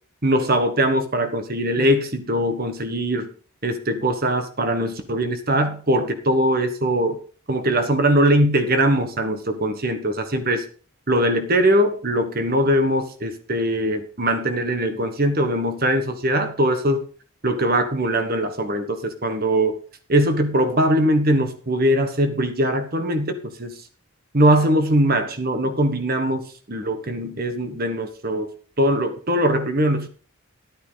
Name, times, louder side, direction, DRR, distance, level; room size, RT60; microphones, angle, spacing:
voice 1, 0.2-3.3 3.6-7.2 7.5-10.6 11.1-17.0 17.4-19.8 20.1-23.7 24.3-26.4 26.7-28.5 28.8-30.1, right 1 dB, 45° right, 8 dB, 1.4 m, -21 dB
11.5 x 9.6 x 4.0 m, 0.40 s
head